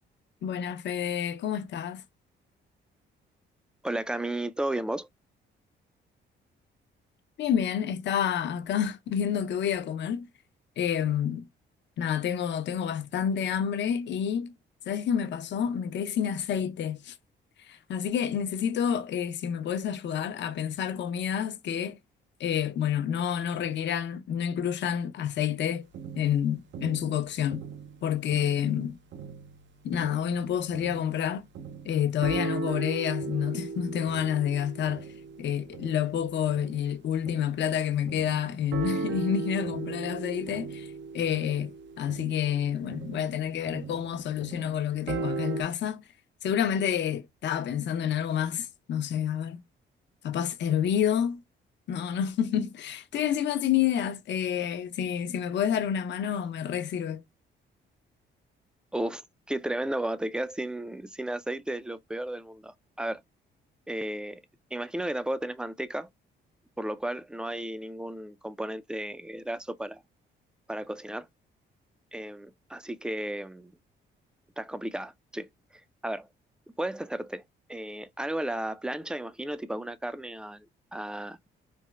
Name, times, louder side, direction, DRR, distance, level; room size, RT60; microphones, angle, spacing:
voice 1, 0.4-2.0 7.4-10.3 10.8-11.5 12.0-14.5 14.9-17.2 17.6-22.0 22.4-25.9 26.1-27.6 28.0-29.0 29.8-31.5 31.8-35.1 35.4-46.0 46.4-49.6 50.2-51.4 51.9-57.2, left 9 dB, 65° left, 0.6 m, -29 dB
voice 2, 3.8-5.1 58.9-59.2 59.5-63.2 63.9-64.4 64.7-66.1 66.8-70.0 70.7-71.3 72.1-73.7 74.6-75.5 76.0-76.3 76.8-77.4 77.7-80.7 80.9-81.4, right 1 dB, 5° right, 0.3 m, -33 dB
sound 1, 25.9-28.8 29.1-37.7 38.1-45.6, right 5 dB, 65° right, 0.5 m, -37 dB
4.2 x 2.0 x 2.3 m
cardioid pair, 90°, 20 cm